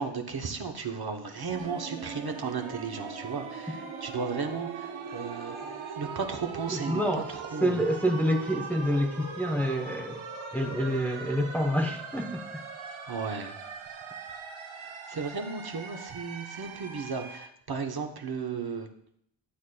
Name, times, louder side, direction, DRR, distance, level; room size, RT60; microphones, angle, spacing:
voice 1, 0.0-7.8 13.1-13.5 15.1-18.9, right 5 dB, 50° right, 4 dB, 0.9 m, -35 dB
sound 1, 1.5-17.5, right 5 dB, 85° right, 0.9 m, -40 dB
voice 2, 6.7-7.3 7.6-10.2 10.5-12.4, equal, 5° left, 2 dB, 0.8 m, -27 dB
11.5 x 8.1 x 2.2 m, 0.69 s
wide cardioid pair, 115°, 46 cm